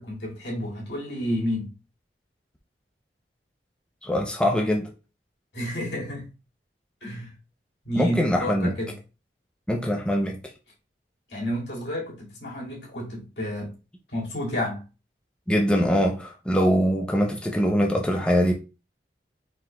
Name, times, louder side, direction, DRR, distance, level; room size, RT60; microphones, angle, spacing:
voice 1, 0.0-1.7 5.5-6.3 7.0-7.3 7.8-9.0 11.3-13.7 14.1-14.9, equal, 85° left, 2.1 m, -30 dB
voice 2, 4.0-4.9 8.0-8.7 9.7-10.4 15.5-18.5, equal, 5° left, 0.5 m, -23 dB
4.7 x 3.8 x 2.2 m
head